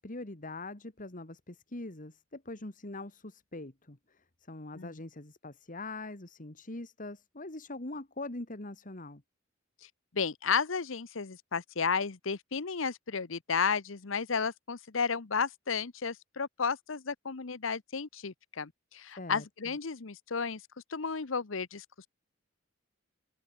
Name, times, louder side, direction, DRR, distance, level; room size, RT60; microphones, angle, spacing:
voice 1, 0.0-9.2 19.2-19.5, left 2 dB, 40° left, 2.1 m, -43 dB
voice 2, 10.1-20.6 20.9-22.1, left 5 dB, 70° left, 1.0 m, -33 dB
open air
head